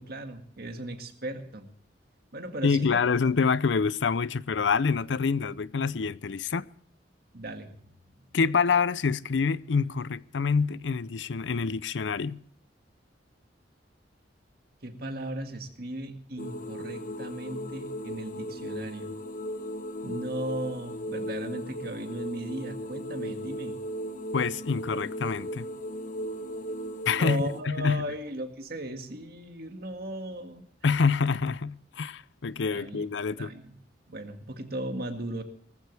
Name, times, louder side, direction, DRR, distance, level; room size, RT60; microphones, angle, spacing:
voice 1, 0.0-1.7 2.3-3.3 7.3-8.3 14.8-19.1 20.0-23.8 27.2-30.7 32.7-33.1 33.4-33.7 34.1-35.4, right 1 dB, 60° right, 2.0 m, -37 dB
voice 2, 2.6-6.6 8.3-12.4 24.3-25.6 27.1-28.0 30.8-33.5, left 5 dB, 80° left, 0.6 m, -26 dB
sound 1, 16.4-27.6, equal, 45° left, 1.2 m, -37 dB
19.0 x 14.5 x 3.4 m
head